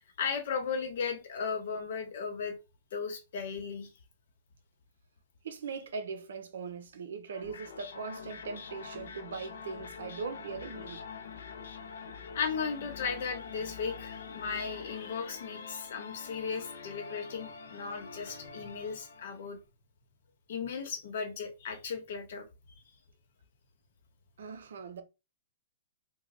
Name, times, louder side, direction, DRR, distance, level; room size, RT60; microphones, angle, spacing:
voice 1, 0.2-2.5 2.9-3.9 12.3-19.6 20.5-22.5, left 5 dB, 55° left, 1.0 m, -36 dB
voice 2, 5.4-11.0 24.4-25.0, right 5 dB, 75° right, 0.7 m, -40 dB
sound 1, 7.3-19.5, left 6 dB, 90° left, 0.7 m, -45 dB
3.1 x 2.3 x 3.8 m
hypercardioid pair, 175°, 0 cm